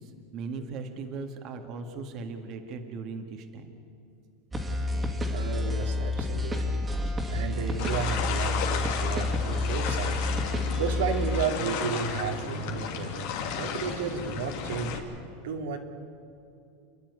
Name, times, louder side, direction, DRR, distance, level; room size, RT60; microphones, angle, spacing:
voice 1, 0.0-3.7, right 4 dB, 45° right, 5 dB, 1.9 m, -38 dB
sound 1, 4.5-11.4, left 2 dB, 15° right, 2.4 m, -29 dB
voice 2, 5.3-6.8 7.3-13.3 13.6-15.0 15.4-15.8, right 6 dB, 85° right, 3 dB, 2.6 m, -33 dB
sound 2, 7.8-15.0, left 7 dB, 65° left, 2.9 m, -34 dB
30.0 x 10.5 x 9.6 m, 2.6 s
supercardioid pair, 145°, 0 cm